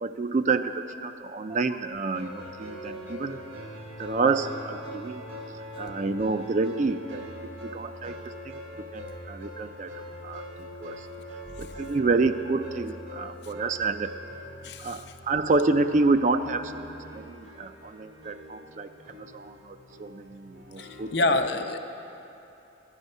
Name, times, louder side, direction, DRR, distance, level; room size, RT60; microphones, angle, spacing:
voice 1, 0.0-3.4 4.0-5.2 5.8-7.3 7.6-8.2 8.4-8.6 8.9-10.4 10.8-11.1 11.6-14.1 14.8-21.4, right 3 dB, 40° right, 9 dB, 0.4 m, -28 dB
sound 1, 2.1-21.3, equal, 80° right, 1.7 m, -43 dB
voice 2, 14.6-15.2 20.8-21.8, left 2 dB, 60° left, 7 dB, 0.6 m, -28 dB
13.0 x 10.5 x 5.4 m, 2.9 s
head